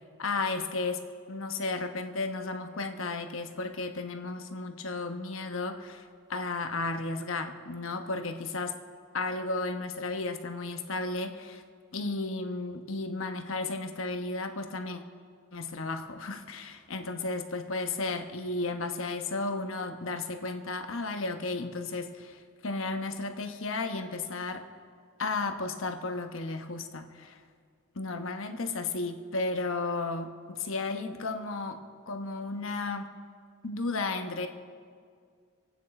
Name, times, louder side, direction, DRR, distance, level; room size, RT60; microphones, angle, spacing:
voice 1, 0.2-1.0 1.3-8.7 9.1-11.6 11.9-15.0 15.5-24.6 25.2-27.4 27.9-31.8 32.1-33.1 33.6-34.5, left 3 dB, 65° left, 6 dB, 1.1 m, -33 dB
26.5 x 9.2 x 4.3 m, 2.1 s
head